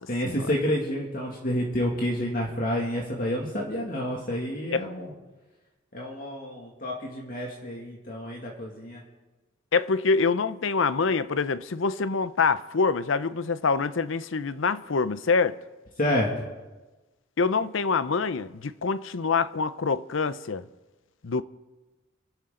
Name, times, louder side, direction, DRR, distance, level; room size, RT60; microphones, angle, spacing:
voice 1, 0.1-5.1 5.9-9.0 16.0-16.3, equal, 45° left, 2.4 m, -29 dB
voice 2, 9.7-15.6 17.4-20.6 21.2-21.4, left 4 dB, 75° left, 0.7 m, -25 dB
28.5 x 12.5 x 3.9 m
head